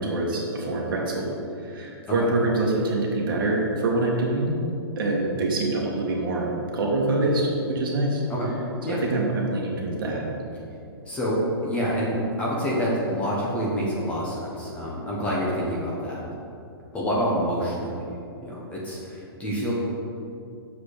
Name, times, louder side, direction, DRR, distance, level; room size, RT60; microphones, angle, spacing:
voice 1, 0.0-1.4 1.6-4.6 5.0-8.2 8.9-10.3, right 2 dB, 55° right, -2 dB, 1.9 m, -25 dB
voice 2, 11.1-16.3 16.9-17.9 18.4-19.7, equal, 10° left, -5 dB, 0.9 m, -27 dB
6.8 x 5.0 x 6.4 m, 2.6 s
hypercardioid pair, 170°, 13 cm